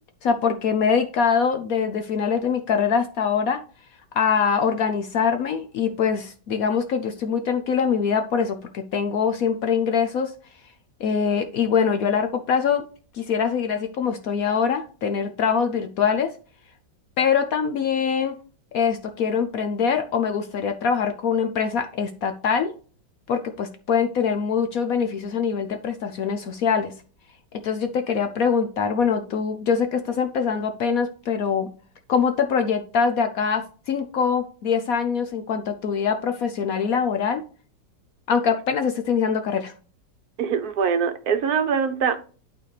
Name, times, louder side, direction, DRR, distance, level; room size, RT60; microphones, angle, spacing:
voice 1, 0.2-3.6 4.1-10.3 11.0-12.8 13.1-16.3 17.2-18.3 18.7-22.7 23.3-26.9 27.5-31.7 32.1-37.4 38.3-39.7, left 6 dB, 65° left, 7 dB, 1.0 m, -23 dB
voice 2, 40.4-42.3, right 6 dB, 65° right, 9 dB, 1.2 m, -23 dB
11.5 x 4.2 x 3.2 m, 0.40 s
omnidirectional pair, 1.9 m